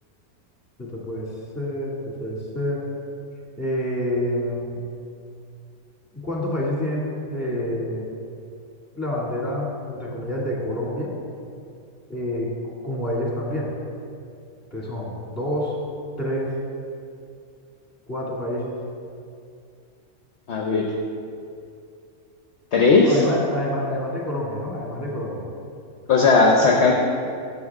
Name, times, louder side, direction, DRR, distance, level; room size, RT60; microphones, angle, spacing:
voice 1, 0.8-1.3 1.5-2.8 3.6-4.8 6.1-8.1 9.0-11.1 12.1-12.5 12.8-13.7 14.7-15.8 16.2-16.6 18.1-18.8 23.0-25.4, left 1 dB, 10° left, -4 dB, 2.1 m, -27 dB
voice 2, 20.5-20.9 22.7-23.2 26.1-26.9, left 3 dB, 55° left, 1 dB, 1.0 m, -17 dB
13.0 x 7.9 x 3.6 m, 2.5 s
omnidirectional pair, 1.5 m